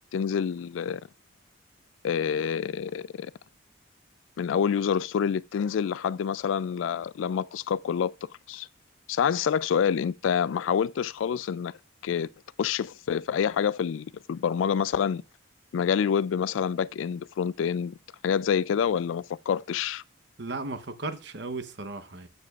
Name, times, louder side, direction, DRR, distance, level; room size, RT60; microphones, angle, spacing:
voice 1, 0.1-1.0 2.0-3.3 4.4-8.1 8.5-8.7 9.1-11.7 12.0-12.3 12.6-15.2 15.7-17.9 18.2-20.0, left 7 dB, 80° left, 0.3 m, -27 dB
voice 2, 20.4-22.3, right 3 dB, 60° right, 0.9 m, -35 dB
15.0 x 6.8 x 2.4 m
head